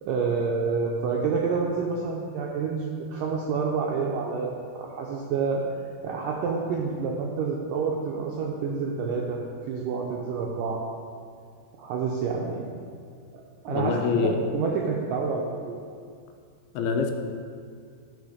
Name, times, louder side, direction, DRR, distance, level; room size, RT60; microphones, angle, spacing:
voice 1, 0.0-5.6 6.0-9.4 9.7-10.8 11.8-12.7 13.3-14.0 14.2-15.8, right 5 dB, 80° right, -1 dB, 1.9 m, -28 dB
voice 2, 13.7-14.4 16.7-17.1, left 5 dB, 80° left, 4 dB, 2.5 m, -25 dB
11.0 x 5.1 x 4.9 m, 2.2 s
omnidirectional pair, 4.6 m